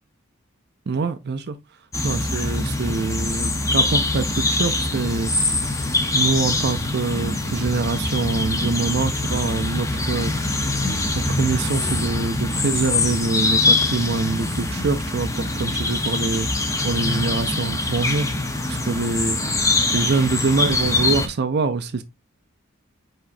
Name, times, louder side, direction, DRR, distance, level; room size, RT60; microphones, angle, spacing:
voice 1, 0.9-1.6 2.0-5.9 6.1-10.8 11.1-22.0, right 4 dB, 50° right, 0.5 m, -25 dB
sound 1, 1.9-21.3, left 2 dB, 15° left, 0.7 m, -23 dB
4.8 x 4.3 x 2.6 m
head